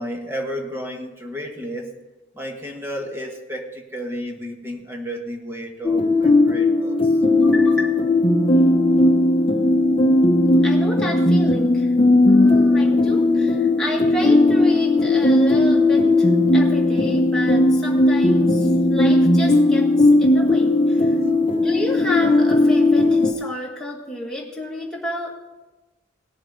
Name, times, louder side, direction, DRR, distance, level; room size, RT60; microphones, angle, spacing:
voice 1, 0.0-2.0 2.3-7.1 21.2-21.3, equal, 15° right, 1 dB, 1.3 m, -32 dB
sound 1, 5.8-23.3, left 2 dB, 30° left, 0.9 m, -17 dB
voice 2, 7.4-8.0 10.6-11.9 12.3-21.2 21.6-25.4, left 1 dB, 5° left, -3 dB, 1.9 m, -31 dB
18.0 x 7.3 x 3.8 m, 1.1 s
head